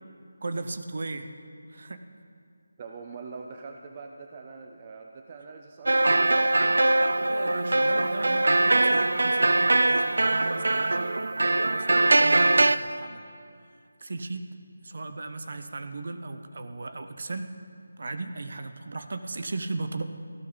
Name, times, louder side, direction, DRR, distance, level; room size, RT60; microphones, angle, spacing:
voice 1, 0.4-1.3 1.7-2.0 7.3-11.1 11.6-13.2 14.0-14.6 14.8-17.6 18.0-20.0, right 3 dB, 45° right, 9 dB, 0.8 m, -36 dB
voice 2, 2.8-6.6, right 4 dB, 20° right, 3 dB, 0.5 m, -43 dB
sound 1, 5.9-12.8, right 2 dB, 75° right, 0.5 m, -22 dB
17.5 x 15.5 x 4.0 m, 2.3 s
figure-of-eight pair, 180°, 0 cm